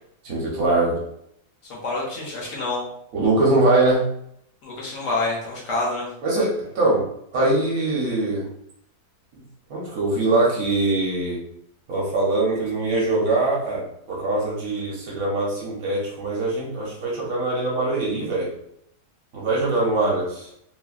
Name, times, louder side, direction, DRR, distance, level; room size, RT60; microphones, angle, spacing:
voice 1, 0.2-1.0 3.1-4.0 6.2-7.1 7.3-8.5 9.7-11.4 11.9-18.5 19.3-20.5, right 2 dB, 60° right, -4 dB, 1.1 m, -22 dB
voice 2, 1.7-2.8 4.6-6.1, left 2 dB, 60° left, -4 dB, 0.9 m, -27 dB
3.1 x 2.1 x 2.4 m, 0.72 s
omnidirectional pair, 1.8 m